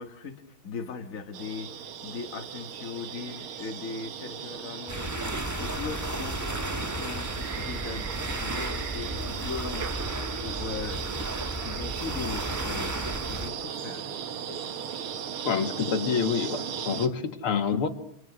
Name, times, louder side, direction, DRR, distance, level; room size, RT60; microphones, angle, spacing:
voice 1, 0.0-6.6 6.9-11.1 11.6-13.0 13.3-14.1, left 5 dB, 40° left, 5 dB, 2.1 m, -39 dB
sound 1, 1.3-17.1, right 8 dB, 75° right, 2.2 m, -37 dB
sound 2, 4.9-13.5, right 1 dB, 10° right, 1.3 m, -34 dB
voice 2, 15.4-17.9, left 6 dB, 80° left, 7 dB, 2.7 m, -27 dB
28.5 x 27.0 x 6.3 m, 0.69 s
omnidirectional pair, 2.4 m